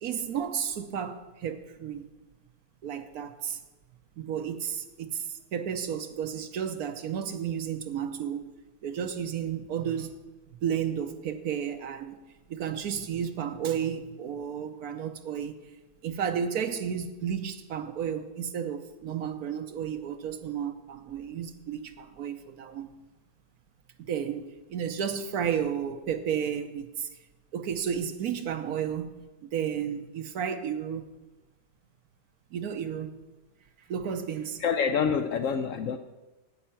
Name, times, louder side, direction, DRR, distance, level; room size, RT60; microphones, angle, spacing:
voice 1, 0.0-2.0 2.8-3.6 4.2-8.5 8.8-10.1 10.6-12.2 12.5-15.5 16.0-22.9 24.1-27.1 27.5-31.1 32.5-33.2 33.9-34.6, right 8 dB, 70° right, 8 dB, 1.2 m, -32 dB
voice 2, 34.6-36.0, left 6 dB, 70° left, 8 dB, 0.8 m, -26 dB
9.9 x 8.5 x 5.7 m, 1.1 s
omnidirectional pair, 1.7 m